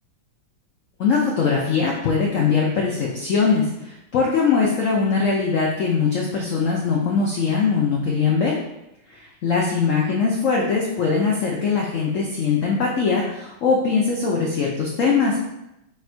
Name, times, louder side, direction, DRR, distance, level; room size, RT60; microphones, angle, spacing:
voice 1, 1.0-8.6 9.2-15.4, left 5 dB, 90° left, -2 dB, 0.6 m, -21 dB
3.5 x 2.4 x 4.4 m, 0.87 s
omnidirectional pair, 2.1 m